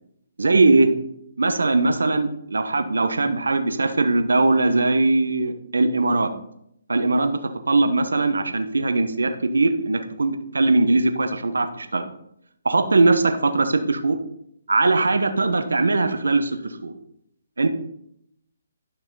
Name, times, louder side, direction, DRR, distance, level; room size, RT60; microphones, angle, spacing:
voice 1, 0.4-0.9 1.4-6.3 6.9-7.4 7.7-12.0 12.6-14.2 14.7-16.9 17.6-17.7, right 3 dB, 85° right, 8 dB, 1.0 m, -20 dB
11.5 x 6.0 x 3.9 m, 0.74 s
hypercardioid pair, 145°, 0 cm